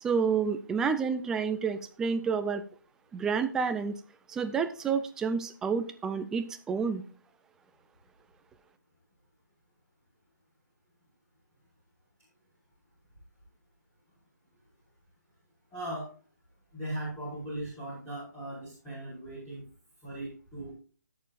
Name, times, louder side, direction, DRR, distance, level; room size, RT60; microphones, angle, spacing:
voice 1, 0.0-2.6 3.1-3.9 4.3-7.0, right 6 dB, 5° right, 9 dB, 0.4 m, -29 dB
voice 2, 15.7-16.1 16.7-19.6 20.0-20.7, right 1 dB, 15° left, -10 dB, 5.4 m, -38 dB
19.0 x 6.8 x 2.5 m, 0.39 s
figure-of-eight pair, 155°, 10 cm